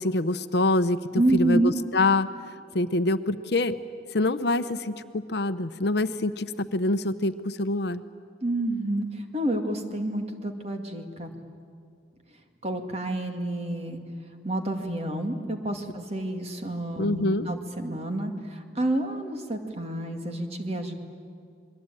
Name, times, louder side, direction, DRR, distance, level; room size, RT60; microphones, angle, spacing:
voice 1, 0.0-2.3 2.7-3.7 4.1-8.0 17.0-17.5, left 2 dB, 55° left, 11 dB, 0.8 m, -25 dB
voice 2, 1.1-1.8 8.4-11.3 12.6-14.0 14.4-20.9, right 1 dB, 35° right, 4 dB, 2.2 m, -29 dB
28.5 x 22.0 x 9.1 m, 2.3 s
head